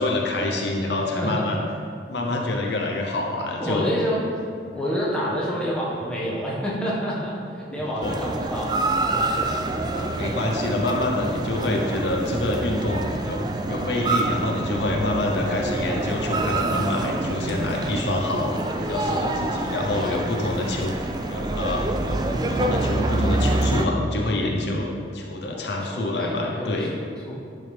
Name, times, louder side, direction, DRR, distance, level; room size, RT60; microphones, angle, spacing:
voice 1, 0.0-1.6 2.1-3.9 4.7-4.8 7.7-8.1 9.9-20.9 21.3-22.2 22.5-24.9 25.1-26.9, left 2 dB, 65° left, 0 dB, 0.8 m, -27 dB
voice 2, 1.1-1.5 3.6-4.2 4.7-8.7 9.5-9.6 25.5-27.3, equal, 5° left, -7 dB, 1.4 m, -28 dB
sound 1, 8.0-23.9, right 2 dB, 20° right, 0.3 m, -26 dB
10.5 x 5.4 x 3.4 m, 2.3 s
head